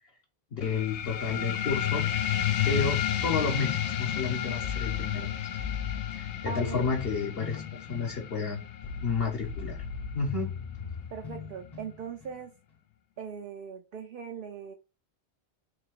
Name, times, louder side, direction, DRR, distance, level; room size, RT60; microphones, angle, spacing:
voice 1, 0.5-2.1 2.6-5.4 6.2-7.6 7.9-8.6 9.0-9.8 10.1-10.5, left 4 dB, 60° left, -1 dB, 1.1 m, -31 dB
sound 1, 0.6-11.7, left 10 dB, 85° left, 0.9 m, -32 dB
sound 2, 2.6-12.4, left 7 dB, 40° left, 0.9 m, -39 dB
voice 2, 6.5-6.8 11.1-12.5 13.2-14.7, right 6 dB, 60° right, 4 dB, 0.7 m, -40 dB
3.6 x 2.7 x 3.6 m, 0.30 s
omnidirectional pair, 1.1 m